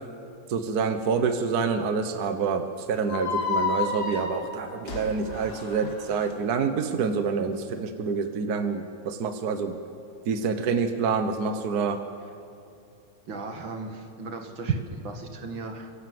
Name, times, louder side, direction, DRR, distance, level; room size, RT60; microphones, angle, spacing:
voice 1, 0.5-9.8 10.3-12.0, right 5 dB, 65° right, 8 dB, 0.9 m, -27 dB
sound 1, 3.1-6.3, left 4 dB, 40° left, 3.1 m, -31 dB
voice 2, 13.3-15.9, right 3 dB, 45° right, 4 dB, 2.3 m, -37 dB
29.5 x 16.5 x 7.8 m, 2.6 s
omnidirectional pair, 3.4 m